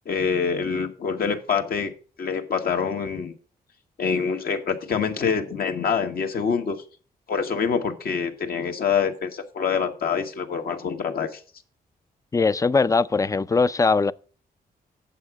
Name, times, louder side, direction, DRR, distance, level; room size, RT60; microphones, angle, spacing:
voice 1, 0.0-1.9 2.2-3.3 4.0-6.8 7.3-11.4, left 6 dB, 65° left, 1.5 m, -25 dB
voice 2, 12.3-14.1, left 4 dB, 20° left, 0.4 m, -20 dB
8.6 x 7.3 x 4.7 m
cardioid pair, 80°, 16 cm